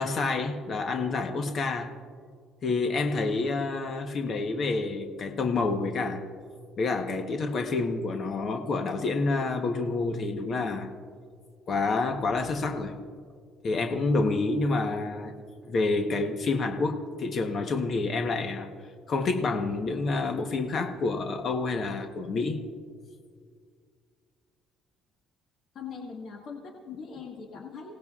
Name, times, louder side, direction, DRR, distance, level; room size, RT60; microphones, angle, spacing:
voice 1, 0.0-2.0 2.6-6.2 6.8-10.9 11.7-13.0 13.6-15.3 15.6-22.6, left 3 dB, 40° left, 5 dB, 1.0 m, -28 dB
voice 2, 25.7-27.9, left 5 dB, 55° left, 0 dB, 1.5 m, -41 dB
29.5 x 17.5 x 2.4 m, 2.1 s
cardioid pair, 160°, 0 cm